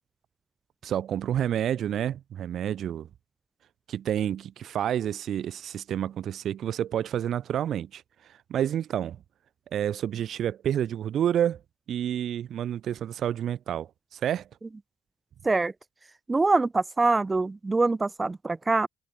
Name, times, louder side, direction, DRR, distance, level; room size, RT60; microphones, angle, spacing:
voice 1, 0.8-3.1 3.9-9.2 9.7-11.6 11.9-14.5, right 10 dB, 70° right, 3.9 m, -29 dB
voice 2, 16.3-18.9, right 3 dB, 25° right, 1.3 m, -24 dB
cardioid pair, 90°, 0 cm